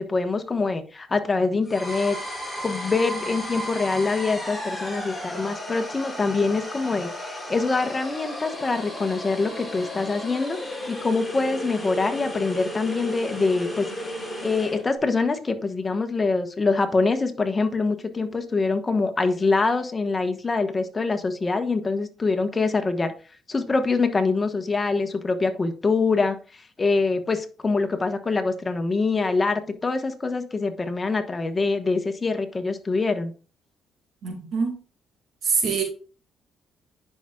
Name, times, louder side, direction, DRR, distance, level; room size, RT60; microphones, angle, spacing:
voice 1, 0.0-2.2 2.6-10.6 10.9-14.2 14.4-23.1 23.5-33.3, left 3 dB, 30° left, 6 dB, 1.2 m, -24 dB
sound 1, 1.7-14.8, equal, 5° left, 3.2 m, -34 dB
voice 2, 34.2-34.8 35.4-35.8, right 5 dB, 65° right, 2 dB, 2.1 m, -24 dB
10.5 x 5.8 x 2.4 m, 0.36 s
cardioid pair, 90°, 0 cm